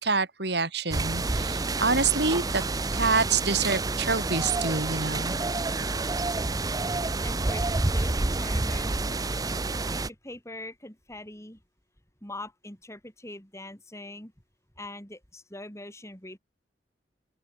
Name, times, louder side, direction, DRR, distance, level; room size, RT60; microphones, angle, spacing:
voice 1, 0.0-2.6 2.9-5.4, right 4 dB, 60° right, 3.5 m, -26 dB
sound 1, 0.9-10.1, right 2 dB, 20° right, 0.6 m, -28 dB
voice 2, 7.2-9.2 9.9-11.6 12.2-14.3 14.8-16.4, left 1 dB, 15° left, 6.2 m, -42 dB
open air
head